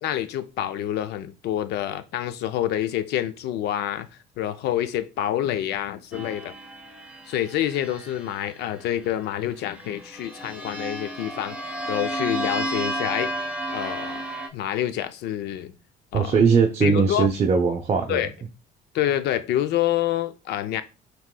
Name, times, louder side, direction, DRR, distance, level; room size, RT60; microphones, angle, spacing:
voice 1, 0.0-4.1 4.4-6.5 7.3-11.6 11.9-14.2 14.5-15.7 16.1-16.4 16.8-17.3 18.1-18.3 18.9-20.8, left 12 dB, 75° left, 0.5 m, -27 dB
sound 1, 6.1-8.9 9.7-14.5, right 1 dB, 5° right, 0.9 m, -32 dB
voice 2, 16.1-18.2, right 5 dB, 35° right, 0.6 m, -20 dB
5.9 x 3.0 x 2.2 m
cardioid pair, 110°, 17 cm